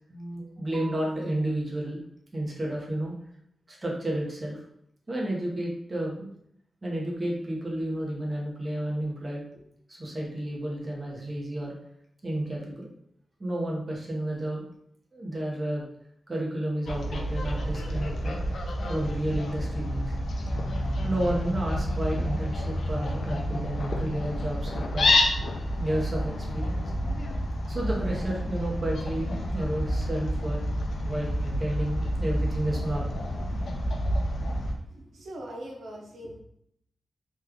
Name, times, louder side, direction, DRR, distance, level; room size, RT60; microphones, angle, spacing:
voice 1, 0.1-2.0 2.3-3.1 3.7-4.6 5.1-6.3 6.8-9.6 9.9-11.7 12.2-12.9 13.4-14.7 15.1-15.8 16.3-18.4 18.8-20.1 21.0-25.2 25.8-26.9 27.7-30.6 31.0-33.3, right 1 dB, 25° right, -3 dB, 0.9 m, -31 dB
Fowl, 16.9-34.7, left 1 dB, 65° left, 0.5 m, -29 dB
voice 2, 34.9-36.4, equal, 80° right, -2 dB, 0.7 m, -41 dB
3.1 x 2.4 x 3.6 m, 0.72 s
wide cardioid pair, 105°, 0 cm